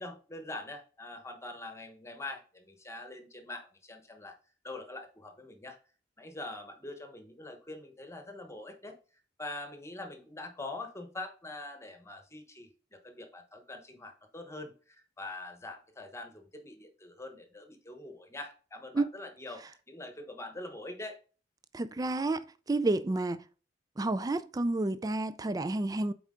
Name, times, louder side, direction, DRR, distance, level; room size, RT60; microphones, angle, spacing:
voice 1, 0.0-4.4 4.6-5.8 6.2-8.9 9.4-21.2, left 2 dB, 15° left, 1.1 m, -44 dB
voice 2, 21.7-23.4 24.0-26.1, right 2 dB, 20° right, 0.3 m, -30 dB
7.9 x 4.5 x 3.7 m
head